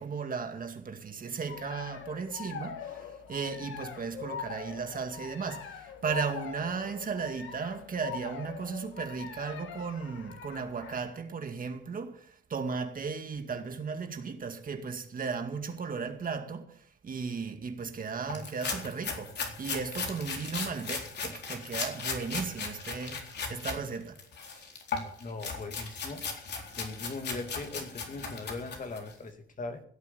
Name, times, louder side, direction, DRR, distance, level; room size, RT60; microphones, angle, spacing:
voice 1, 0.0-23.2 23.5-24.2 24.5-24.6, right 5 dB, 45° right, 2.2 m, -36 dB
sound 1, 1.5-11.1, left 7 dB, 80° left, 1.8 m, -43 dB
sound 2, 18.3-23.8 24.2-29.1, left 5 dB, 60° left, 4.0 m, -37 dB
voice 2, 25.2-26.2 26.8-29.8, left 3 dB, 40° left, 2.3 m, -39 dB
16.5 x 8.4 x 7.0 m
cardioid pair, 90°, 20 cm